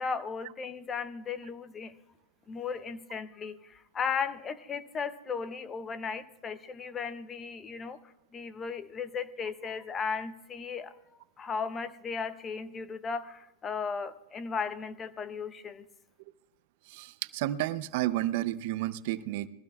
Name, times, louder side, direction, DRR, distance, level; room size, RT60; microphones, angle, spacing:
voice 1, 0.0-1.9 2.5-8.0 8.3-11.0 11.4-15.9, left 5 dB, 20° left, 13 dB, 0.7 m, -36 dB
voice 2, 16.9-19.5, right 14 dB, 60° right, 14 dB, 0.6 m, -31 dB
21.0 x 15.5 x 2.4 m, 0.94 s
hypercardioid pair, 130°, 0 cm